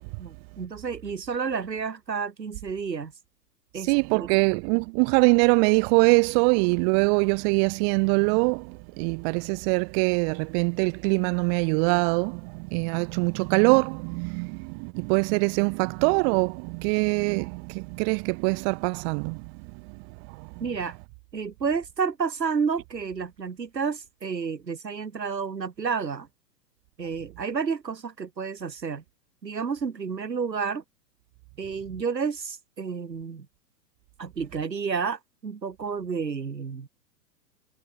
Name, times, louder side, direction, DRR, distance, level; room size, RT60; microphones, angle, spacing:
voice 1, 0.2-3.1 3.7-4.3 20.6-21.0 21.3-26.3 27.0-29.0 29.4-30.8 31.6-33.5 34.2-36.9, right 5 dB, 85° right, 6.2 m, -30 dB
voice 2, 3.8-20.7, right 40 dB or more, 40° right, 6.0 m, -24 dB
hypercardioid pair, 120°, 49 cm